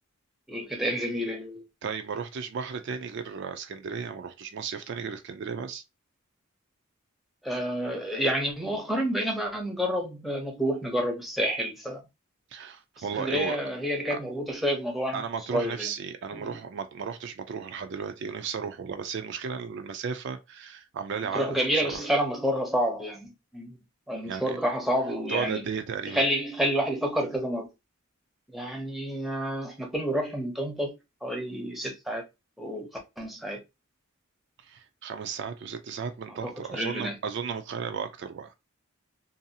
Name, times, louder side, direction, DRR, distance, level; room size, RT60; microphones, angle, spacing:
voice 1, 0.5-1.6 7.4-12.0 13.2-15.2 15.5-15.9 16.3-16.5 21.3-23.8 24.1-25.6 26.1-27.7 28.5-30.9 31.2-32.2 32.6-32.9 33.2-33.6 36.4-37.2, equal, ahead, 0.6 m, -29 dB
voice 2, 1.8-5.8 12.5-13.6 14.1-14.2 15.1-22.0 24.3-24.6 25.3-26.2 34.6-38.5, right 6 dB, 55° right, 0.3 m, -35 dB
2.6 x 2.3 x 2.7 m
head